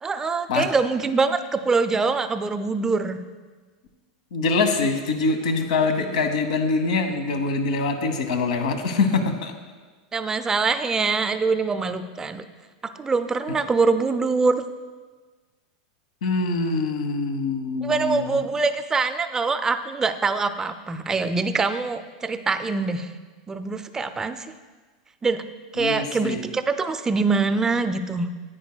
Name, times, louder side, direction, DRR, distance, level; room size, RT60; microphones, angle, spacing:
voice 1, 0.0-3.2 6.0-6.2 10.1-12.4 13.0-14.6 17.8-23.1 23.5-24.5 25.2-25.4 25.7-28.3, right 4 dB, 15° right, 9 dB, 0.4 m, -24 dB
voice 2, 4.3-9.5 16.2-18.5 25.8-26.4, left 3 dB, 80° left, 6 dB, 1.0 m, -24 dB
10.0 x 8.7 x 2.2 m, 1.4 s
supercardioid pair, 130°, 4 cm